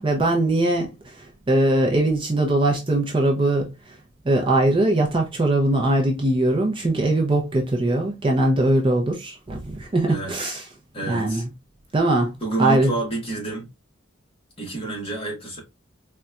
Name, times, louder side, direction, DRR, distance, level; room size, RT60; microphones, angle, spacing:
voice 1, 0.0-3.9 4.2-10.6 11.1-11.5 11.9-12.3 12.6-12.9, right 1 dB, 25° right, 0.5 m, -21 dB
voice 2, 10.0-10.6 10.9-11.4 12.4-13.6 14.6-15.6, right 2 dB, 25° left, 1.1 m, -29 dB
3.9 x 2.2 x 2.3 m
head